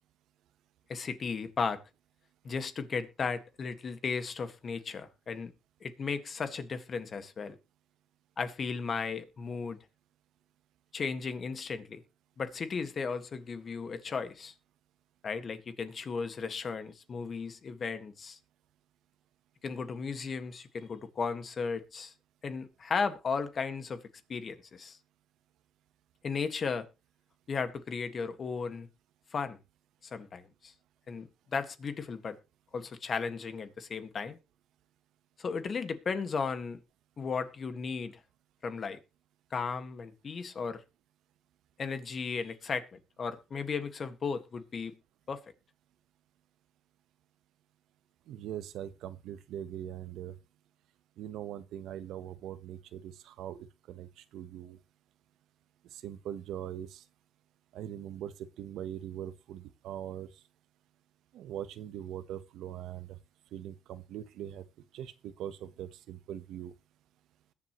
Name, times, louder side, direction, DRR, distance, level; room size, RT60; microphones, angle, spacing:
voice 1, 0.9-1.8 2.4-5.5 5.8-7.6 8.4-9.8 10.9-12.0 12.4-14.5 15.2-18.4 19.6-22.1 22.4-24.0 24.3-25.0 26.2-26.9 27.5-28.9 29.3-29.6 30.0-30.7 31.1-32.4 32.7-34.4 35.4-36.8 37.2-38.2 38.6-39.0 39.5-40.8 41.8-45.0 45.3-45.4, left 5 dB, 45° left, 1.7 m, -35 dB
voice 2, 48.3-50.4 51.2-53.6 53.9-54.8 55.9-57.0 57.7-60.3 61.3-63.2 63.5-64.6 64.9-66.7, right 11 dB, 85° right, 1.0 m, -41 dB
21.0 x 7.6 x 3.1 m
cardioid pair, 90°, 0 cm